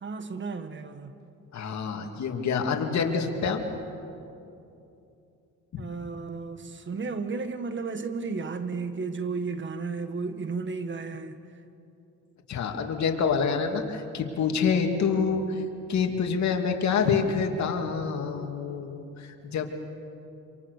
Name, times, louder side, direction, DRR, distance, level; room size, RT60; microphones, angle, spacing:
voice 1, 0.0-1.2 5.8-11.4, right 4 dB, 40° right, 1.7 m, -33 dB
voice 2, 1.5-3.6 5.7-5.9 12.5-15.6 15.9-19.7, left 6 dB, 65° left, 2.5 m, -27 dB
27.0 x 26.0 x 6.6 m
cardioid pair, 90°, 30 cm